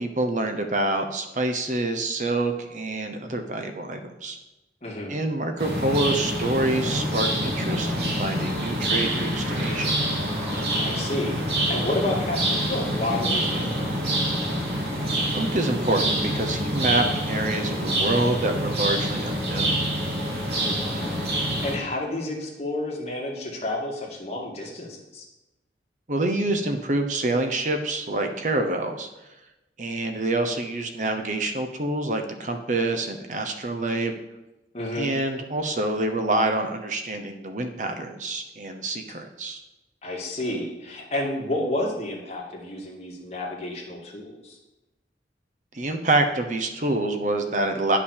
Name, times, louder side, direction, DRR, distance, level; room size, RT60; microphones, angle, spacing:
voice 1, 0.0-4.4 5.1-9.9 15.3-19.8 26.1-29.1 29.8-34.1 35.0-39.6 45.7-48.0, right 2 dB, 45° right, 6 dB, 0.9 m, -26 dB
voice 2, 4.8-5.2 10.7-13.9 20.5-25.2 34.7-35.1 40.0-44.6, left 1 dB, 35° left, -2 dB, 2.4 m, -31 dB
sound 1, 5.6-21.8, right 1 dB, 70° right, 2.8 m, -26 dB
10.5 x 5.9 x 6.5 m, 0.98 s
head